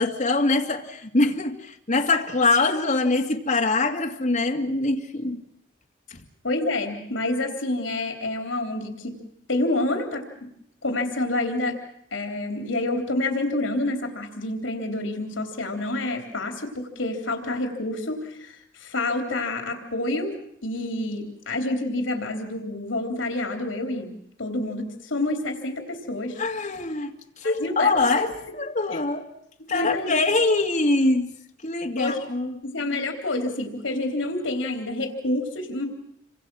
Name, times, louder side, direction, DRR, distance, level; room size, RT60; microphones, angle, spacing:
voice 1, 0.0-5.4 6.1-6.2 26.4-27.1 27.4-29.3 29.7-31.3 31.6-32.6, left 3 dB, 40° left, 2.1 m, -23 dB
voice 2, 6.4-9.2 9.5-10.5 10.8-11.8 12.1-20.3 20.6-24.1 24.4-26.4 27.4-28.6 28.9-29.0 29.7-30.2 32.0-32.2 32.6-35.9, left 2 dB, 80° left, 3.6 m, -28 dB
28.0 x 25.0 x 6.2 m
head